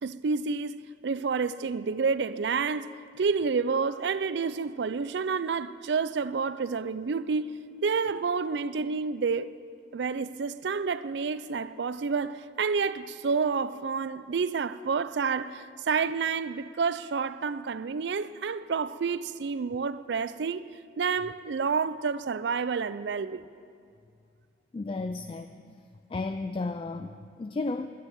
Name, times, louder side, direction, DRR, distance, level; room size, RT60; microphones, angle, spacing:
voice 1, 0.0-7.5 7.8-9.5 9.9-23.5, right 5 dB, 70° right, 0.4 m, -29 dB
voice 2, 24.7-25.7 26.1-27.9, left 3 dB, 30° left, 0.3 m, -33 dB
11.0 x 9.8 x 9.3 m
head